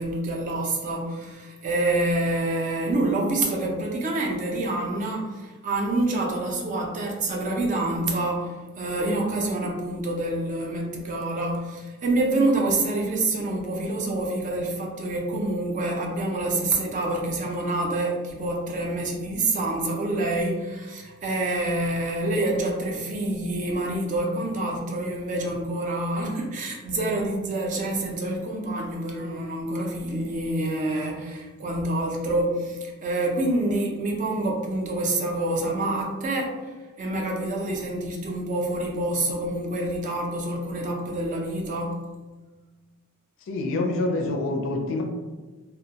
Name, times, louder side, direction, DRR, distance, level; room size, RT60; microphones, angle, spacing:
voice 1, 0.0-42.0, right 2 dB, 35° right, 0 dB, 0.4 m, -27 dB
voice 2, 43.5-45.0, left 2 dB, 60° left, 3 dB, 0.4 m, -26 dB
2.2 x 2.1 x 2.7 m, 1.3 s
head